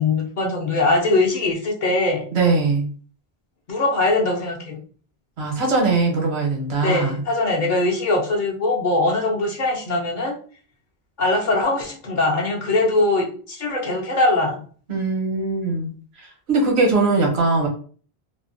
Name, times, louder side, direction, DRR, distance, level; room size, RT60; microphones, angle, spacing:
voice 1, 0.0-2.3 3.7-4.8 6.8-10.4 11.2-14.6, left 2 dB, 55° left, -1 dB, 0.7 m, -21 dB
voice 2, 2.3-2.9 5.4-7.2 14.9-15.9 16.2-17.7, right 3 dB, 80° right, 1 dB, 1.1 m, -21 dB
2.6 x 2.1 x 2.5 m, 0.42 s
omnidirectional pair, 1.1 m